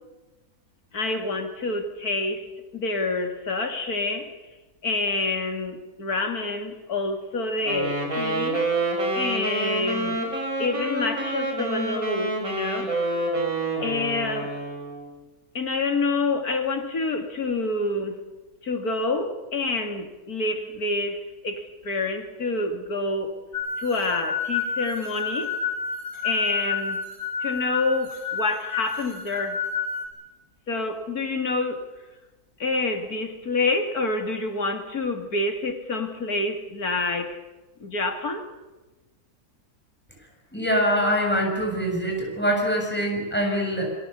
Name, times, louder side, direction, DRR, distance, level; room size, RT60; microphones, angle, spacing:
voice 1, 0.9-2.4 2.7-4.3 4.8-8.6 9.1-10.2 10.6-12.9 13.8-14.5 15.5-18.2 18.6-23.3 23.8-25.5 26.2-27.0 27.4-29.6 30.7-31.9 32.6-37.4 37.8-38.5, left 3 dB, 75° left, 5 dB, 3.0 m, -27 dB
Wind instrument woodwind instrument, 7.7-15.1, right 2 dB, 65° right, 6.0 m, -27 dB
sound 1, 23.5-30.1, left 5 dB, 35° left, 7.3 m, -29 dB
voice 2, 40.5-43.9, equal, 5° left, 1 dB, 7.0 m, -24 dB
27.5 x 22.5 x 6.9 m, 1.2 s
omnidirectional pair, 1.6 m